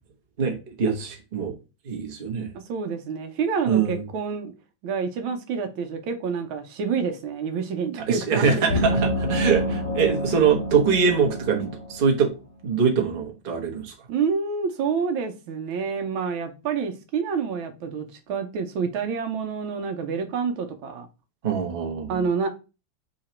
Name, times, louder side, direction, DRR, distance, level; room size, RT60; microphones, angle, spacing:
voice 1, 0.4-1.5 1.8-2.5 3.6-4.0 8.1-12.3 12.6-13.9 21.4-22.2, right 6 dB, 40° right, 0.8 m, -23 dB
voice 2, 2.7-4.5 4.8-8.8 14.1-21.1 22.1-22.5, right 5 dB, 85° right, 1.5 m, -28 dB
sound 1, 8.7-12.2, equal, 40° left, 0.9 m, -27 dB
3.9 x 2.9 x 4.2 m
omnidirectional pair, 2.2 m